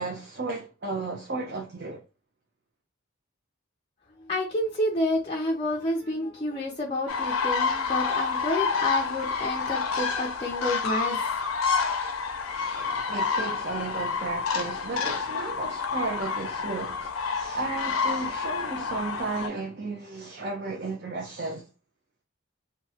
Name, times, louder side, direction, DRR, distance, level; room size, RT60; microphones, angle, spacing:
voice 1, 0.0-2.0 12.5-21.6, right 3 dB, 50° right, 0.6 m, -34 dB
voice 2, 4.3-11.2, left 1 dB, 25° left, 0.4 m, -29 dB
sound 1, 7.1-19.5, left 5 dB, 85° left, 0.5 m, -29 dB
2.9 x 2.3 x 2.7 m
head